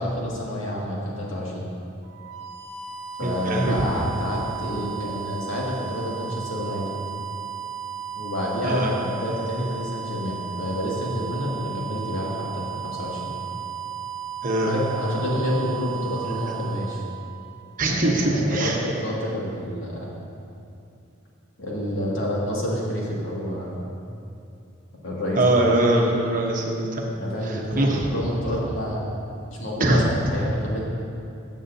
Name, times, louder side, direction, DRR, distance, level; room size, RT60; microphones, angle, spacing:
voice 1, 0.0-1.7 3.2-6.9 8.2-13.3 14.7-17.0 17.9-20.1 21.6-23.9 25.0-25.6 27.2-29.1 29.5-30.0 30.3-30.8, equal, 85° left, -5 dB, 2.1 m, -28 dB
sound 1, 2.0-17.8, right 8 dB, 60° right, 0.8 m, -35 dB
voice 2, 3.2-3.8 8.6-8.9 14.4-14.7 17.8-18.8 25.4-27.1 27.5-28.0 29.8-30.0, right 1 dB, 40° right, -1 dB, 1.1 m, -22 dB
15.5 x 7.2 x 2.8 m, 2.6 s
head